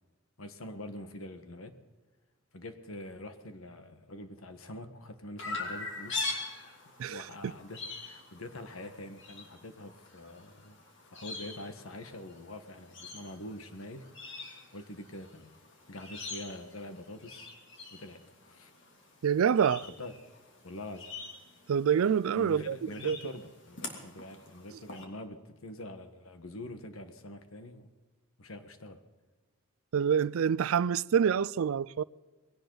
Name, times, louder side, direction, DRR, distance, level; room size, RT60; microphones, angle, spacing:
voice 1, 0.4-1.7 2.5-6.5 7.1-10.8 11.1-14.0 14.7-15.5 15.9-17.5 17.9-18.7 19.8-20.1 20.6-21.1 22.3-27.9 28.4-29.0, left 1 dB, 90° left, 1.4 m, -45 dB
Chirp tweet, 5.4-25.0, left 3 dB, 60° left, 2.9 m, -44 dB
voice 2, 19.2-19.8 21.7-23.2 29.9-32.0, right 7 dB, 80° right, 0.4 m, -26 dB
21.0 x 17.0 x 4.0 m
head